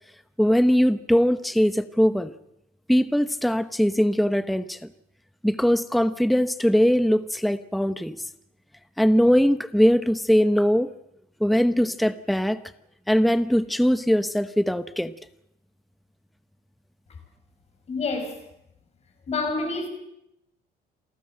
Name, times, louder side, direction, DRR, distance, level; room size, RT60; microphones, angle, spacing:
voice 1, 0.4-2.3 2.9-4.8 5.4-8.1 9.0-10.9 11.4-12.6 13.1-15.1, equal, ahead, 0.8 m, -21 dB
voice 2, 17.9-18.4 19.3-19.9, left 3 dB, 40° left, 5.6 m, -27 dB
28.0 x 13.5 x 7.7 m
cardioid pair, 110°, 17 cm